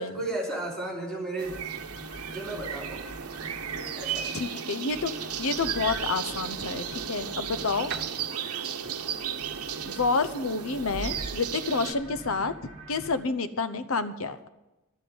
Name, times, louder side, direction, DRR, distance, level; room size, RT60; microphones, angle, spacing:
voice 1, 0.0-1.5 2.3-3.0 3.7-4.2 8.5-8.6, right 2 dB, 5° left, -4 dB, 3.4 m, -34 dB
sound 1, 1.4-4.6 4.9-13.2, right 2 dB, 30° right, 1.7 m, -43 dB
sound 2, 1.4-11.9, right 8 dB, 90° right, 0.9 m, -35 dB
voice 2, 4.3-7.9 9.8-12.6 12.9-14.5, left 4 dB, 70° left, 12 dB, 0.8 m, -29 dB
Piano, 7.9-11.6, right 7 dB, 50° right, 0.7 m, -43 dB
12.0 x 7.9 x 9.5 m, 1.0 s
head